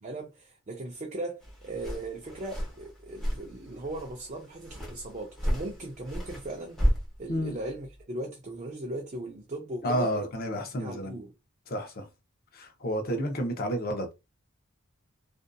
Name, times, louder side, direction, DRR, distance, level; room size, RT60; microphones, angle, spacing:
voice 1, 0.0-10.1 10.7-11.3, right 2 dB, 35° right, 0.5 m, -38 dB
sound 1, 1.4-8.0, equal, 5° left, 0.9 m, -33 dB
voice 2, 9.8-11.2 11.7-12.1 12.5-14.1, equal, 45° left, 0.7 m, -30 dB
2.6 x 2.4 x 2.2 m
head